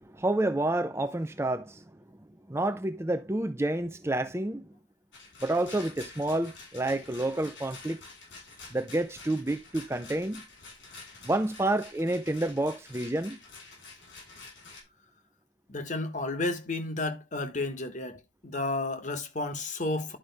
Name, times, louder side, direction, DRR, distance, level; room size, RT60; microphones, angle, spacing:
voice 1, 0.1-1.8 2.5-4.6 5.4-8.0 8.7-10.4 11.2-13.4, right 1 dB, 15° right, 0.5 m, -29 dB
Rattle, 5.1-14.8, left 3 dB, 75° left, 4.2 m, -48 dB
voice 2, 15.7-20.2, left 2 dB, 40° left, 1.3 m, -32 dB
11.5 x 5.2 x 3.4 m
head